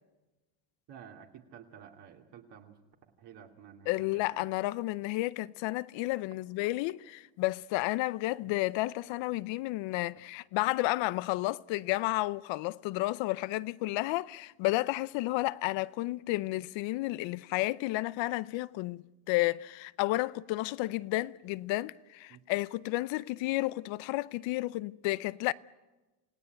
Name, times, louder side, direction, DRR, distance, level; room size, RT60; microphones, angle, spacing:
voice 1, 0.9-2.8 3.2-4.4 8.4-8.5 22.3-22.4, right 8 dB, 55° right, 2.7 m, -52 dB
voice 2, 3.9-25.5, left 19 dB, 65° left, 0.8 m, -32 dB
28.5 x 17.0 x 9.2 m
supercardioid pair, 110°, 50 cm